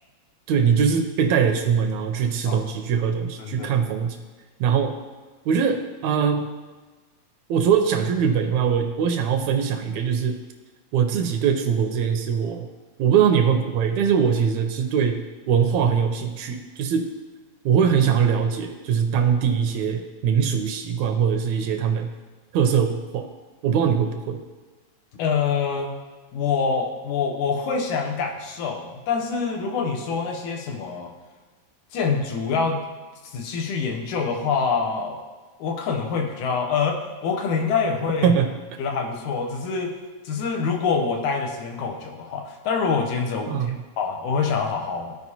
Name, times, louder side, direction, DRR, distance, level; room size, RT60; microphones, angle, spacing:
voice 1, 0.5-4.2 4.6-5.0 5.5-6.5 7.5-10.4 10.9-12.7 13.0-17.1 17.7-22.1 22.5-23.3 23.6-24.4 38.2-38.5 43.5-43.8, right 7 dB, 80° right, 6 dB, 1.8 m, -22 dB
voice 2, 3.4-3.7 25.2-25.9 26.3-31.1 31.9-32.8 33.2-35.2 35.6-38.3 38.8-39.9 40.3-45.1, left 5 dB, 80° left, 2 dB, 2.3 m, -25 dB
14.5 x 4.8 x 2.8 m, 1.3 s
omnidirectional pair, 3.4 m